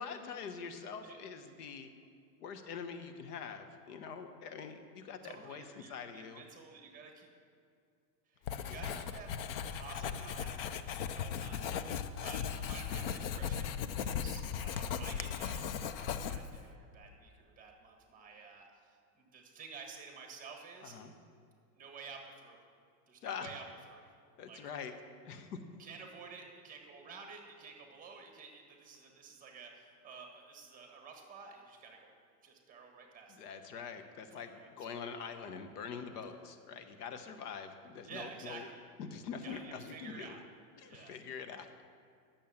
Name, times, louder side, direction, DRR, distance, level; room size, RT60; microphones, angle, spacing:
voice 1, 0.0-1.9 2.4-6.5 8.5-9.1 20.8-21.1 23.2-23.5 24.4-24.9 25.2-25.6 33.3-38.7 39.0-40.3 40.8-41.8, left 6 dB, 70° left, 8 dB, 1.1 m, -44 dB
voice 2, 5.2-7.3 8.3-9.3 9.7-21.0 21.7-22.6 23.1-24.1 24.5-24.6 25.8-32.1 32.4-33.4 33.7-35.4 36.1-36.4 38.0-38.8 39.4-40.4 40.9-41.1, right 5 dB, 15° right, 2 dB, 1.6 m, -52 dB
Writing, 8.5-16.7, left 7 dB, 40° left, 0.4 m, -38 dB
10.5 x 7.4 x 7.1 m, 2.4 s
supercardioid pair, 145°, 49 cm